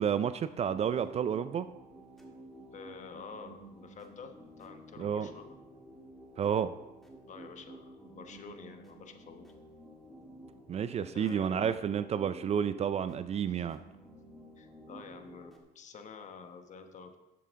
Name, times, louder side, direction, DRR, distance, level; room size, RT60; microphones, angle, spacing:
voice 1, 0.0-1.7 5.0-5.3 6.4-6.7 10.7-13.8, right 8 dB, 40° right, 0.4 m, -30 dB
sound 1, 0.7-15.6, right 1 dB, ahead, 1.6 m, -52 dB
voice 2, 2.7-5.6 7.3-9.4 11.1-11.7 13.5-13.7 14.6-17.2, left 5 dB, 45° left, 1.1 m, -49 dB
11.0 x 7.7 x 3.6 m
cardioid pair, 110°, 17 cm